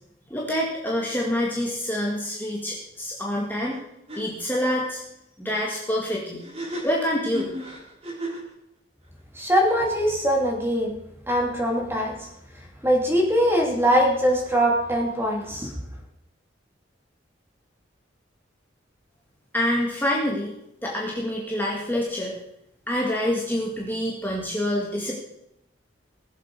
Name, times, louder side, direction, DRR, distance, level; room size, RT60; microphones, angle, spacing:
voice 1, 0.3-3.8 4.2-5.0 5.4-6.4 6.8-7.5 19.5-20.5 20.8-22.3 22.9-25.2, left 1 dB, 10° left, -3 dB, 1.9 m, -26 dB
sound 1, 3.7-3.8 4.1-4.2 6.4-8.5, equal, 35° right, 3.9 m, -34 dB
voice 2, 9.4-10.9 11.3-12.1 12.8-15.7, equal, 15° right, 0 dB, 2.8 m, -22 dB
19.5 x 7.5 x 4.7 m, 0.80 s
head